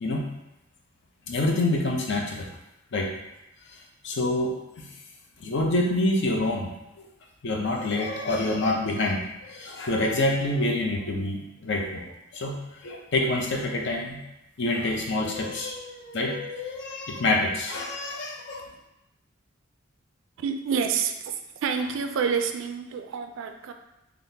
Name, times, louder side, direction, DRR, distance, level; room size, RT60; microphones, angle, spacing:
voice 1, 1.3-2.5 2.9-3.1 4.0-4.9 5.4-6.7 7.4-12.6 12.8-14.2 14.6-18.6, left 2 dB, 60° left, 1 dB, 0.5 m, -27 dB
voice 2, 20.4-23.7, right 6 dB, 70° right, 6 dB, 0.3 m, -28 dB
3.6 x 2.4 x 2.7 m, 0.91 s
head